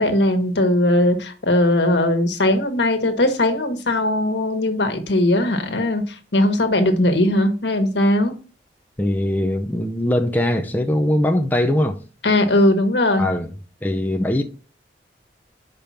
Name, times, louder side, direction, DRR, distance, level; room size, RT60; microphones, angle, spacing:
voice 1, 0.0-8.4 12.2-13.3, left 1 dB, 75° left, 1.4 m, -19 dB
voice 2, 9.0-12.0 13.2-13.5 13.8-14.4, left 1 dB, 10° left, 0.6 m, -21 dB
6.2 x 5.2 x 5.6 m
head